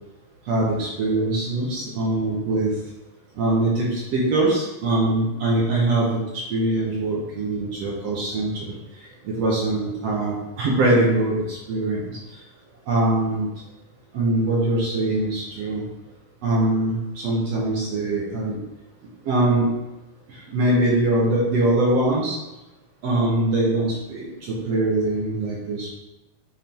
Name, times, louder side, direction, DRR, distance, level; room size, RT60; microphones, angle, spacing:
voice 1, 0.5-2.7 3.4-6.2 6.5-8.7 9.2-12.2 12.9-13.5 14.1-15.8 16.4-18.6 19.3-19.6 20.5-22.4 23.0-25.9, right 2 dB, 70° right, -5 dB, 1.5 m, -22 dB
7.3 x 3.8 x 4.4 m, 1.0 s
omnidirectional pair, 4.4 m